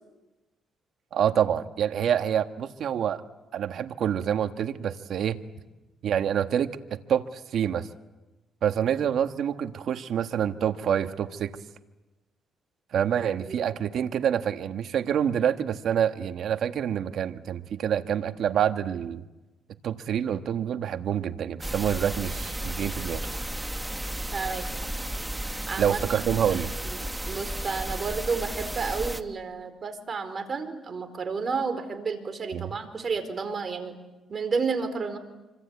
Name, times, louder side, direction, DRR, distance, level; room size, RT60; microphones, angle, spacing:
voice 1, 1.1-3.2 3.5-5.4 6.0-7.9 8.6-11.5 12.9-19.2 19.8-23.3 25.8-26.7 32.5-32.7, right 9 dB, 70° right, 8 dB, 1.4 m, -27 dB
sound 1, 21.6-29.2, right 1 dB, 10° right, 1.4 m, -33 dB
voice 2, 24.3-25.0 25.7-27.0 27.2-33.9 34.3-35.2, right 4 dB, 40° right, 7 dB, 4.6 m, -31 dB
26.0 x 26.0 x 8.3 m, 1.1 s
cardioid pair, 90°, 0 cm